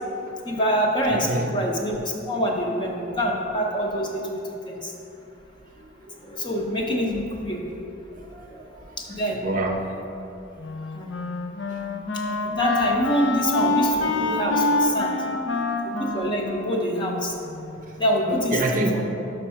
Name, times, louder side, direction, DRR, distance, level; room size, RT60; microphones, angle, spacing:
voice 1, 0.4-4.4 4.7-4.9 6.2-7.6 9.0-9.4 10.9-11.1 12.6-15.2 16.0-17.3 18.0-18.6 18.9-19.1, equal, 25° left, 0 dB, 0.8 m, -25 dB
voice 2, 1.1-1.5 6.4-6.6 8.3-8.6 9.1-9.9 11.7-11.8 18.3-19.1, right 2 dB, 45° right, 2 dB, 0.6 m, -27 dB
Wind instrument woodwind instrument, 10.6-17.8, left 2 dB, 70° left, 0.6 m, -26 dB
5.9 x 5.4 x 5.6 m, 3.0 s
head